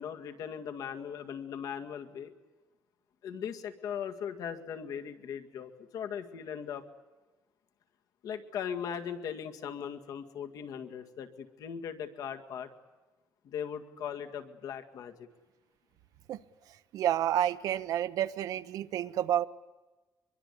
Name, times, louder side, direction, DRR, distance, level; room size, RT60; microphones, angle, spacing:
voice 1, 0.0-2.3 3.2-6.8 8.2-12.7 13.4-15.1, left 8 dB, 65° left, 7 dB, 2.0 m, -39 dB
voice 2, 16.9-19.5, right 11 dB, 70° right, 12 dB, 0.9 m, -29 dB
24.0 x 23.0 x 8.4 m, 1.2 s
cardioid pair, 150°, 6 cm